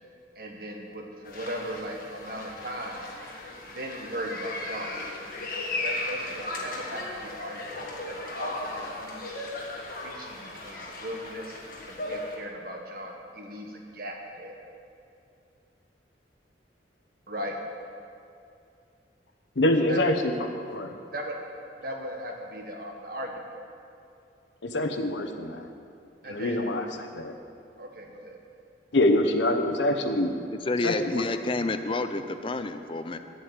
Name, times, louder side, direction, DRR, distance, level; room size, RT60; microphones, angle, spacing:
voice 1, 0.3-3.1 3.7-5.0 5.8-7.7 8.0-9.3 10.0-11.6 11.9-14.6 17.3-17.6 19.9-20.0 21.1-21.3 21.8-23.4 26.2-26.6 27.8-28.4, equal, 55° right, 1 dB, 1.5 m, -37 dB
sound 1, 1.2-12.4, left 2 dB, 50° left, 1.8 m, -36 dB
voice 2, 19.6-20.3 20.7-20.9 24.6-25.7 26.2-27.3 28.9-30.4 30.8-31.2, left 1 dB, 80° left, 6 dB, 1.0 m, -25 dB
voice 3, 30.7-33.2, left 2 dB, 30° left, 9 dB, 0.5 m, -29 dB
9.8 x 8.1 x 8.1 m, 2.5 s
head